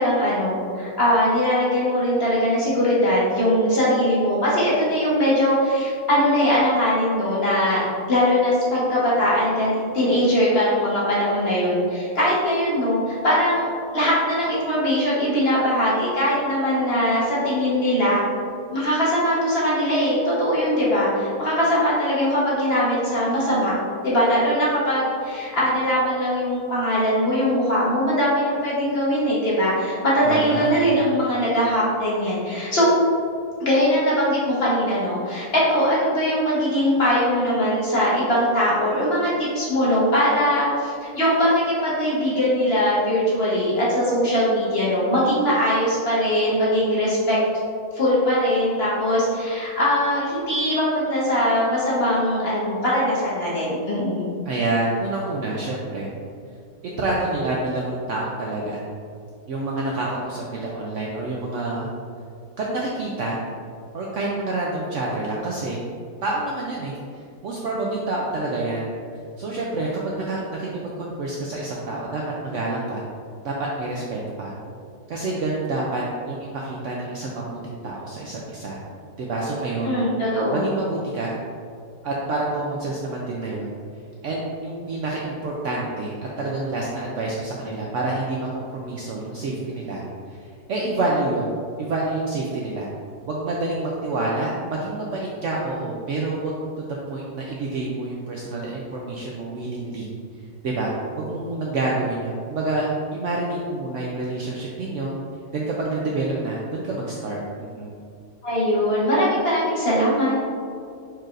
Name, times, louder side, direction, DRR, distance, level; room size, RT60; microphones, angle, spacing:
voice 1, 0.0-18.2 18.7-23.7 24.0-32.9 33.6-47.4 47.9-54.2 79.8-80.6 108.4-110.4, equal, 45° left, -7 dB, 1.2 m, -21 dB
voice 2, 30.2-30.7 54.5-56.1 57.0-58.8 59.5-61.9 62.6-63.4 63.9-65.8 66.2-68.9 69.4-70.7 71.0-73.0 73.4-74.5 75.1-78.8 79.2-80.0 80.5-81.3 82.0-83.7 84.2-90.0 90.3-90.4 90.7-91.5 91.8-92.9 93.3-96.6 97.1-100.1 100.6-100.9 101.1-105.1 105.5-107.4 107.7-108.0, right 2 dB, 70° right, -3 dB, 0.7 m, -27 dB
4.6 x 4.5 x 2.5 m, 2.3 s
omnidirectional pair, 1.7 m